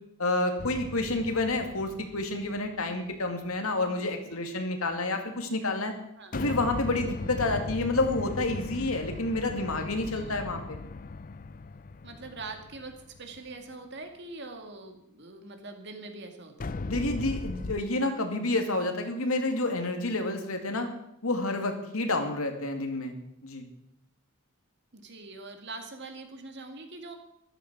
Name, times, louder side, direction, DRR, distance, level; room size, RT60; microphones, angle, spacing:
voice 1, 0.2-5.9 6.3-10.8 16.9-20.9 21.2-23.1 23.4-23.7, left 2 dB, 75° left, 5 dB, 2.3 m, -29 dB
sound 1, 0.6-3.1 6.3-13.5 16.6-17.8, left 3 dB, 40° left, 0.5 m, -38 dB
voice 2, 12.0-16.8 24.9-27.2, right 3 dB, 50° right, 5 dB, 2.2 m, -43 dB
14.0 x 12.5 x 6.2 m, 0.77 s
head